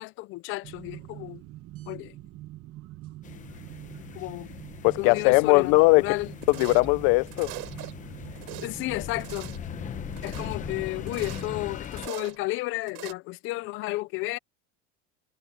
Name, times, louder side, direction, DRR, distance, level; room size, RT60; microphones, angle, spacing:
voice 1, 0.0-1.4 1.9-2.2 4.1-4.5 5.0-6.3 8.6-9.5 10.2-14.4, left 20 dB, 40° left, 0.4 m, -32 dB
sound 1, 0.6-11.8, right 16 dB, 45° right, 1.1 m, -44 dB
sound 2, 3.2-12.1, left 9 dB, 25° left, 0.8 m, -40 dB
voice 2, 4.8-6.0 6.5-7.5, left 29 dB, 90° left, 0.5 m, -19 dB
sound 3, 6.4-6.9 7.3-7.9 8.2-8.7 9.1-9.6 10.1-10.5 11.0-11.5 11.8-12.4 12.9-13.1, right 21 dB, 60° right, 4.6 m, -41 dB
cardioid pair, 175°, 33 cm